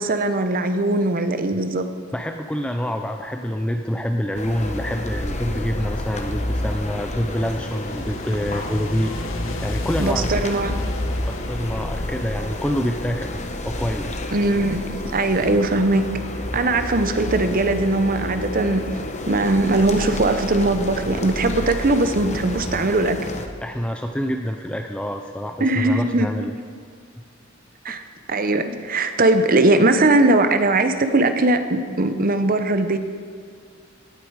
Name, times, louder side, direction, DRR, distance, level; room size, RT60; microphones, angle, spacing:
voice 1, 0.0-1.9 10.0-10.8 14.3-16.1 16.5-18.8 19.3-23.2 25.6-26.5 27.8-28.0 28.3-33.0, right 2 dB, 45° right, 9 dB, 0.9 m, -20 dB
voice 2, 2.1-9.1 9.6-10.5 11.3-13.4 13.6-14.1 23.6-26.5, equal, 5° left, 4 dB, 0.5 m, -26 dB
sound 1, 4.3-23.5, left 1 dB, 35° left, 1.0 m, -30 dB
sound 2, 6.3-13.3, left 2 dB, 70° left, 1.0 m, -35 dB
sound 3, 15.5-21.6, left 1 dB, 55° left, 3.2 m, -40 dB
17.0 x 11.5 x 4.8 m, 2.1 s
head